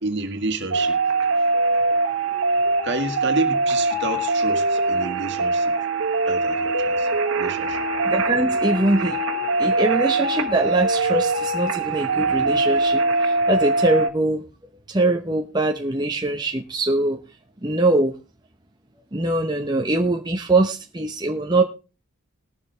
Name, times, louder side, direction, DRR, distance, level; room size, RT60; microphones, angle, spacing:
voice 1, 0.0-1.5 2.8-5.8 6.3-7.9, right 3 dB, 55° right, 1.8 m, -29 dB
sound 1, 0.7-14.1, right 2 dB, 75° right, 1.4 m, -22 dB
voice 2, 8.1-9.2 9.6-14.4 14.9-17.2 17.6-18.2 19.1-21.6, right 2 dB, 20° right, 0.8 m, -22 dB
20.5 x 7.4 x 3.3 m
head